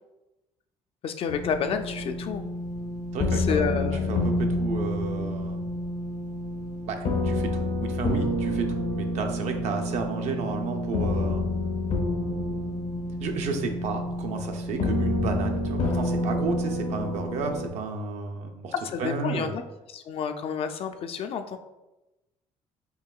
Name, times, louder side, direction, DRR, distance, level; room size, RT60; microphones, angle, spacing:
voice 1, 1.0-2.5 3.3-4.1 18.8-19.6 19.9-21.6, left 6 dB, 50° left, 8 dB, 0.3 m, -30 dB
sound 1, 1.3-17.7, left 1 dB, 80° left, 0.9 m, -28 dB
voice 2, 3.1-5.7 6.9-11.5 13.2-18.7 19.0-19.6, right 4 dB, 70° right, 4 dB, 0.6 m, -32 dB
4.5 x 2.9 x 2.3 m, 1.0 s
cardioid pair, 95°, 12 cm